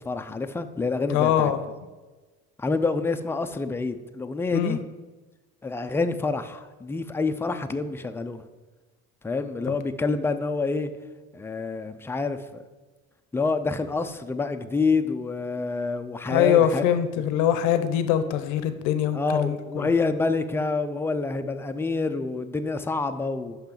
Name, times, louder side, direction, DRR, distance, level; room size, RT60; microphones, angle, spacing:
voice 1, 0.0-1.5 2.6-4.8 5.6-8.4 9.2-10.9 11.3-12.6 13.3-16.8 19.1-23.6, left 3 dB, 10° left, 8 dB, 0.4 m, -27 dB
voice 2, 1.1-1.6 4.5-4.8 16.3-19.9, left 10 dB, 90° left, 10 dB, 0.7 m, -23 dB
5.9 x 5.7 x 6.7 m, 1.2 s
cardioid pair, 120°, 29 cm